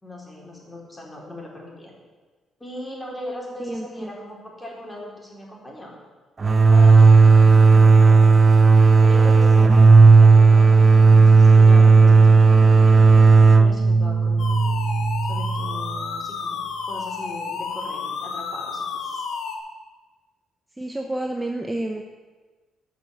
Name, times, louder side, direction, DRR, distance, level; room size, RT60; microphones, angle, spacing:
voice 1, 0.0-1.9 2.6-6.0 6.5-8.4 9.0-13.0 13.6-14.6 15.3-19.2, left 1 dB, 15° left, -2 dB, 4.0 m, -39 dB
voice 2, 3.6-4.1 20.8-22.0, right 1 dB, 10° right, 3 dB, 0.9 m, -29 dB
sound 1, 6.4-15.9, right 4 dB, 35° right, 0.6 m, -13 dB
sound 2, 14.4-19.6, left 5 dB, 75° left, 1.4 m, -31 dB
12.5 x 6.2 x 8.1 m, 1.3 s
cardioid pair, 90°, 0 cm